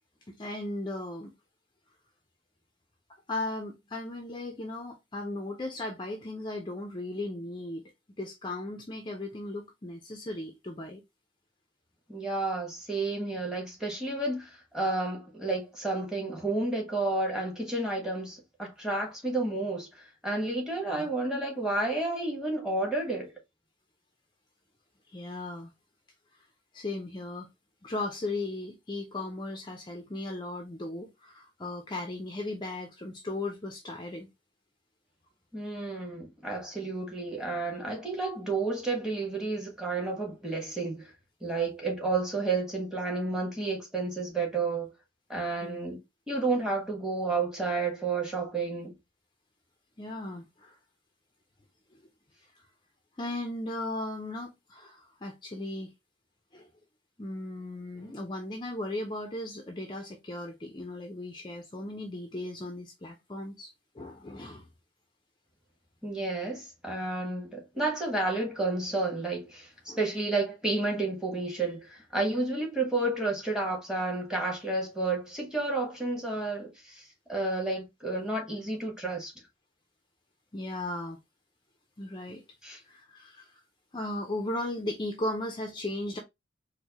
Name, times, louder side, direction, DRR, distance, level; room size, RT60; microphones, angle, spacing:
voice 1, 0.3-1.3 3.3-7.8 8.2-11.0 20.9-21.1 25.1-25.7 26.7-27.5 27.8-34.3 45.6-46.0 50.0-50.8 53.2-55.9 56.5-56.7 57.2-64.7 69.9-70.0 80.5-81.2 82.0-82.4 82.9-83.6 83.9-86.2, left 2 dB, 25° left, 0.5 m, -36 dB
voice 2, 12.1-19.9 20.2-23.3 35.5-41.0 41.4-44.9 45.3-46.0 46.3-49.0 66.0-77.0 77.3-79.3 82.6-82.8, right 2 dB, 5° right, 1.2 m, -31 dB
4.4 x 2.1 x 2.8 m
head